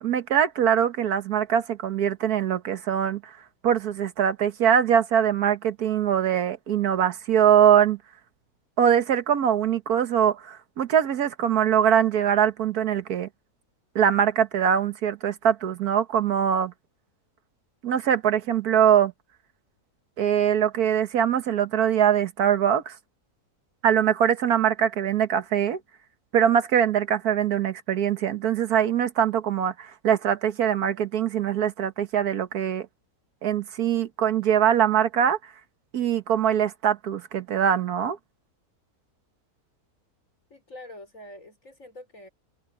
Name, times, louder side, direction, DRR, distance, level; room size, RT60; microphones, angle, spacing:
voice 1, 0.0-3.3 3.6-8.0 8.8-13.3 13.9-16.7 17.8-19.1 20.2-23.0 23.8-25.8 26.3-32.9 33.4-35.4 35.9-38.2, right 9 dB, 80° right, 1.7 m, -22 dB
voice 2, 40.5-42.3, left 1 dB, 55° left, 5.5 m, -45 dB
omnidirectional pair, 1.6 m